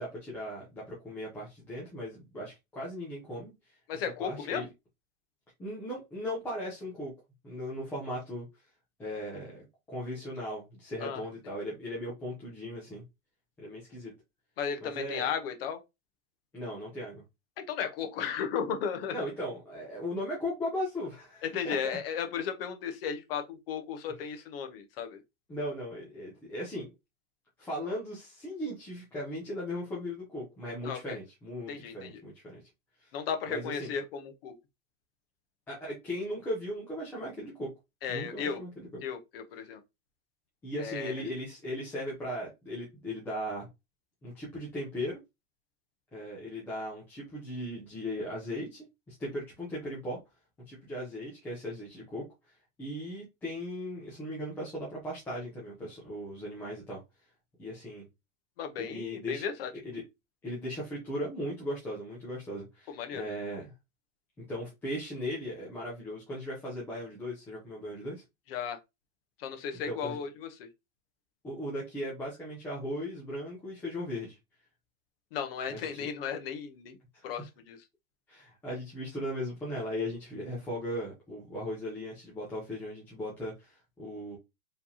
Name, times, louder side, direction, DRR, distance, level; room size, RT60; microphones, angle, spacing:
voice 1, 0.0-3.8 4.2-4.7 5.6-7.1 7.4-8.6 9.0-13.0 13.6-14.1 14.8-15.3 16.5-17.2 19.1-21.7 25.5-26.9 27.6-32.6 33.0-33.1 33.5-33.9 35.7-37.7 38.1-39.0 40.6-43.7 44.2-45.2 46.1-50.2 50.7-57.0 57.6-58.0 58.8-59.4 59.8-60.0 60.4-63.7 64.5-68.2 69.9-70.2 71.4-74.4 75.7-76.1 77.1-77.3 78.3-84.4, equal, 5° left, 0.5 m, -38 dB
voice 2, 3.9-4.7 11.0-11.2 14.6-15.8 17.7-19.2 21.4-25.2 30.8-31.2 31.7-32.2 33.1-34.5 38.0-38.6 39.0-39.8 40.8-41.2 58.6-59.7 62.9-63.2 68.5-68.8 69.4-70.7 75.3-77.0 77.2-77.8, left 7 dB, 45° left, 0.9 m, -35 dB
4.7 x 3.4 x 2.8 m
supercardioid pair, 175°, 39 cm